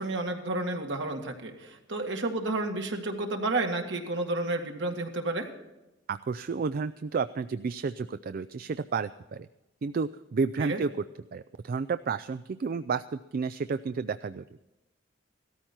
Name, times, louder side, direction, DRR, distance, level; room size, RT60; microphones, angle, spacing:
voice 1, 0.0-5.5 10.6-10.8, right 2 dB, 70° right, 3 dB, 2.0 m, -31 dB
voice 2, 6.1-9.5 9.8-10.9 11.3-14.4, right 5 dB, 50° right, 13 dB, 0.4 m, -31 dB
16.5 x 13.5 x 4.4 m, 1.0 s
head